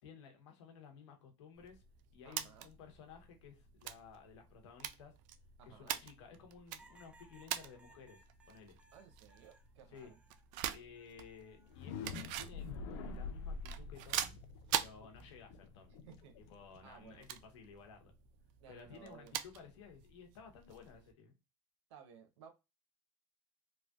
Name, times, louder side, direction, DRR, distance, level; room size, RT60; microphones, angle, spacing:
voice 1, 0.0-1.8 2.1-5.1 5.7-8.2 8.5-8.8 9.9-10.1 10.7-14.4 14.7-16.0 16.4-18.1 18.7-21.3, left 6 dB, 85° left, 1.1 m, -56 dB
sound 1, 1.6-21.1, right 11 dB, 60° right, 0.4 m, -45 dB
voice 2, 2.2-2.7 5.6-6.0 8.9-10.2 15.9-16.3 16.8-17.3 18.6-19.3 21.9-22.5, right 7 dB, 85° right, 0.8 m, -58 dB
sound 2, 6.8-10.5 10.9-11.7 13.1-13.5, right 2 dB, 10° right, 0.5 m, -65 dB
sound 3, 11.6-17.5, left 4 dB, 70° left, 0.5 m, -46 dB
3.2 x 2.5 x 2.3 m
supercardioid pair, 105°, 14 cm